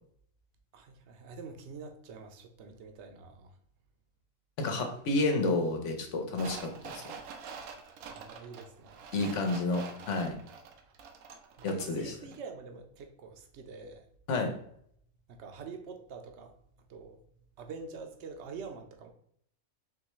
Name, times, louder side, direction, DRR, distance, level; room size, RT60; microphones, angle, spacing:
voice 1, 0.7-3.5 8.1-9.5 11.6-14.0 15.3-16.5 16.9-17.2 17.6-19.1, right 5 dB, 60° right, 0.8 m, -46 dB
voice 2, 4.6-7.1 9.1-10.4 11.6-12.1 14.3-14.5, left 2 dB, 60° left, 1.1 m, -30 dB
sound 1, 6.3-12.0 12.3-12.4, right 6 dB, 90° right, 1.1 m, -46 dB
4.6 x 3.2 x 3.0 m
omnidirectional pair, 1.5 m